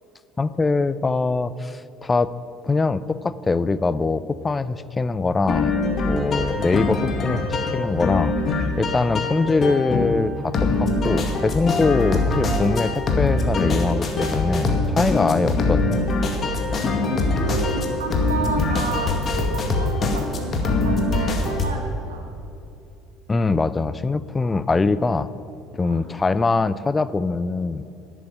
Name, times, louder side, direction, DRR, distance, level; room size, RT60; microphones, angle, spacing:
voice 1, 0.4-2.3 2.6-5.8 6.0-8.3 8.8-16.0 23.3-25.3 25.7-27.8, left 3 dB, 20° left, 16 dB, 0.5 m, -23 dB
sound 1, 5.5-21.7, left 3 dB, 40° left, 2.0 m, -23 dB
voice 2, 17.0-22.2 25.8-26.0, right 2 dB, 85° right, 3 dB, 1.7 m, -31 dB
11.0 x 8.2 x 9.5 m, 2.7 s
hypercardioid pair, 60°, 0 cm